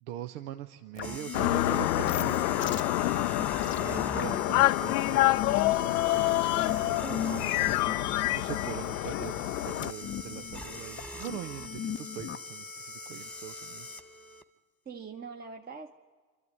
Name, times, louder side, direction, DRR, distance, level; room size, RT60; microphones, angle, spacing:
voice 1, 0.0-2.9 3.8-7.7 8.3-13.9, right 12 dB, 80° right, 8 dB, 0.9 m, -42 dB
sound 1, 1.0-12.4, left 9 dB, 25° left, 0.6 m, -39 dB
sound 2, 1.0-14.4, left 1 dB, 5° left, 1.1 m, -42 dB
sound 3, 1.3-9.9, left 17 dB, 80° left, 0.6 m, -27 dB
voice 2, 3.8-4.7 7.0-7.7 14.8-15.9, right 6 dB, 20° right, 3 dB, 1.0 m, -44 dB
25.5 x 12.5 x 9.5 m, 1.5 s
hypercardioid pair, 85°, 45 cm